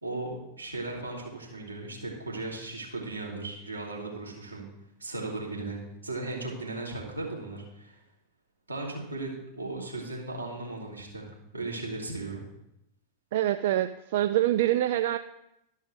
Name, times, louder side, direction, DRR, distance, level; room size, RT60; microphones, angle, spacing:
voice 1, 0.0-4.6 5.0-8.0 8.7-11.3 11.5-12.4, right 2 dB, 80° right, -2 dB, 3.2 m, -36 dB
voice 2, 13.3-15.2, right 13 dB, 55° right, 11 dB, 0.4 m, -25 dB
13.0 x 5.7 x 6.2 m, 0.86 s
figure-of-eight pair, 90°, 0 cm